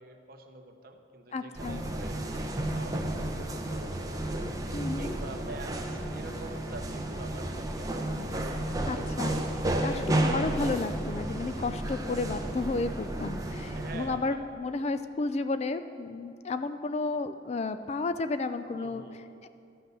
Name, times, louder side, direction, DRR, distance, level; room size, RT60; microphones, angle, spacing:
voice 1, 0.0-2.2 2.7-8.7 13.7-14.9 18.7-19.2, right 2 dB, 50° right, 5 dB, 0.9 m, -46 dB
voice 2, 1.3-1.8 4.7-5.1 8.9-19.1 19.4-19.5, left 3 dB, 35° left, 11 dB, 0.3 m, -32 dB
sound 1, 1.5-14.2, right 1 dB, 20° right, 0.7 m, -32 dB
12.5 x 6.1 x 6.7 m, 2.4 s
head